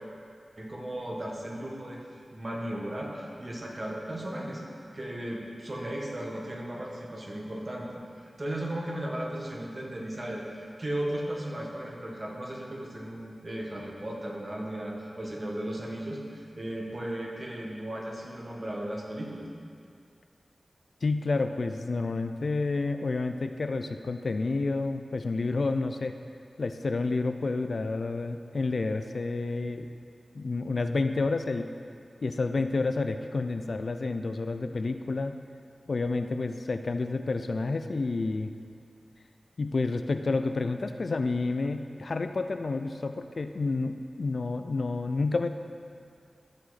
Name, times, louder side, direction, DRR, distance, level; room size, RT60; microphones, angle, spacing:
voice 1, 0.6-4.6 4.9-7.9 8.2-19.5, right 1 dB, 40° right, -2 dB, 1.5 m, -36 dB
voice 2, 21.0-26.2 26.6-29.9 30.3-31.7 32.2-35.4 35.9-38.5 39.6-45.5, left 3 dB, 65° left, 8 dB, 0.4 m, -29 dB
14.0 x 5.0 x 4.1 m, 2.4 s
wide cardioid pair, 70°, 0 cm